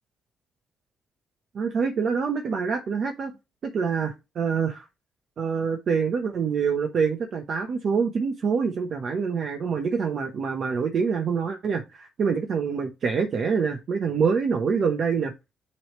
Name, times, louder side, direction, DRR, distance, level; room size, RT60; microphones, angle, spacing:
voice 1, 1.5-3.3 3.7-4.8 5.4-15.3, right 6 dB, 55° right, 4 dB, 0.9 m, -26 dB
9.7 x 3.3 x 3.1 m, 0.24 s
cardioid pair, 90°, 0 cm